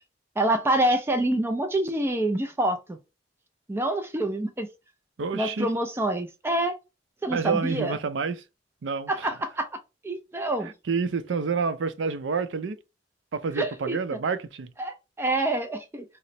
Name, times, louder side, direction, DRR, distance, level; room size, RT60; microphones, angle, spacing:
voice 1, 0.4-3.0 3.7-4.7 5.3-6.7 7.2-8.0 9.1-9.6 10.0-10.7 13.6-14.0 14.8-16.0, right 1 dB, 15° right, 0.3 m, -26 dB
voice 2, 5.2-5.7 7.3-8.4 8.8-9.3 10.6-12.8 13.3-14.7, right 5 dB, 75° right, 0.4 m, -28 dB
3.1 x 2.0 x 4.1 m
head